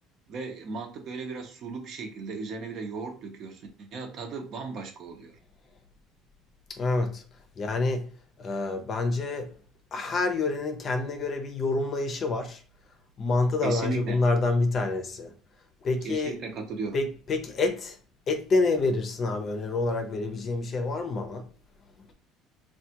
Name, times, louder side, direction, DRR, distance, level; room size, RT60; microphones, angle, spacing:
voice 1, 0.3-5.4 13.6-14.2 16.0-17.0, right 4 dB, 50° right, 0.8 m, -36 dB
voice 2, 6.7-7.2 7.6-8.1 8.4-9.5 9.9-12.6 13.2-15.3 15.8-16.4 16.9-18.0 18.3-21.5, left 3 dB, 35° left, 0.6 m, -27 dB
3.4 x 2.3 x 2.8 m
cardioid pair, 130°, 0 cm